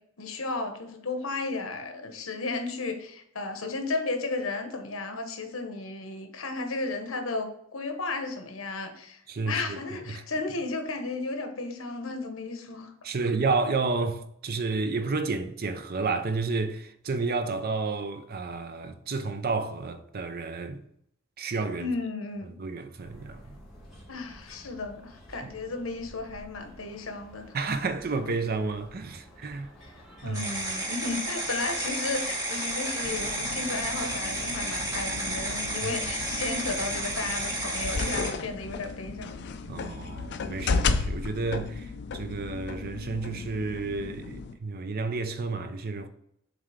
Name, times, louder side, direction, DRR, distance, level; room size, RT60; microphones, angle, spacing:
voice 1, 0.2-12.9 21.8-22.5 24.1-27.6 29.8-29.9 30.2-39.5, left 3 dB, 80° left, 1.1 m, -34 dB
voice 2, 9.3-9.8 10.1-10.2 13.0-20.8 21.4-21.9 22.6-23.6 27.5-29.7 30.2-30.5 35.8-35.9 39.7-46.1, right 3 dB, 50° right, 0.6 m, -31 dB
sound 1, 23.0-33.5, equal, ahead, 2.0 m, -51 dB
sound 2, 30.3-38.3, right 1 dB, 15° right, 2.0 m, -32 dB
sound 3, 33.0-44.6, left 4 dB, 55° left, 0.5 m, -34 dB
7.4 x 3.4 x 5.0 m
head